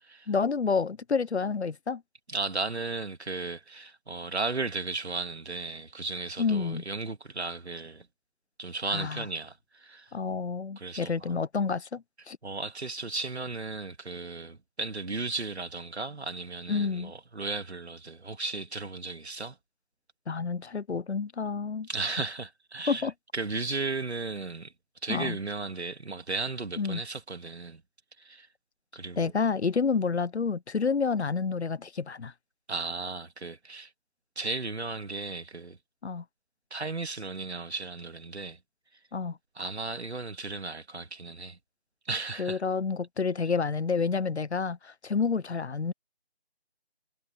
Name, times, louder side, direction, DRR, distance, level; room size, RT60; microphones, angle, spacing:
voice 1, 0.3-2.0 6.4-6.8 8.9-9.3 10.1-12.4 16.7-17.1 20.3-21.9 22.9-23.1 25.1-25.4 26.8-27.0 29.2-32.3 36.0-36.2 39.1-39.4 42.4-45.9, left 5 dB, 85° left, 0.9 m, -29 dB
voice 2, 2.3-8.1 8.6-10.1 10.8-11.3 12.4-19.6 21.9-23.1 23.3-24.7 25.0-27.8 28.2-28.5 28.9-29.3 32.7-33.9 34.4-35.8 36.7-38.6 39.6-41.6 42.1-42.6, right 3 dB, 85° right, 2.2 m, -35 dB
figure-of-eight pair, 175°, 32 cm